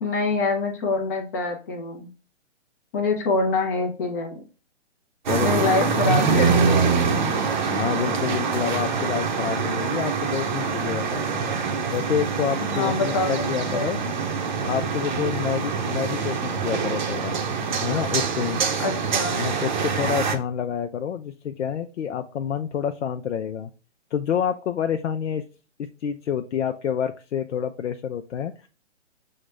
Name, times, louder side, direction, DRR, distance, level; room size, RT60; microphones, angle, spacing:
voice 1, 0.0-2.1 2.9-4.3 5.4-7.0 12.6-13.9 18.8-19.4, left 3 dB, 15° left, 2 dB, 0.5 m, -25 dB
voice 2, 5.3-5.9 7.7-11.5 11.9-14.0 14.7-17.4 17.8-18.6 19.3-23.7 24.1-25.5 25.8-28.7, left 8 dB, 75° left, 7 dB, 0.5 m, -28 dB
sound 1, 5.3-20.4, right 5 dB, 40° right, 0.7 m, -25 dB
6.4 x 2.1 x 3.2 m, 0.36 s
hypercardioid pair, 140°, 36 cm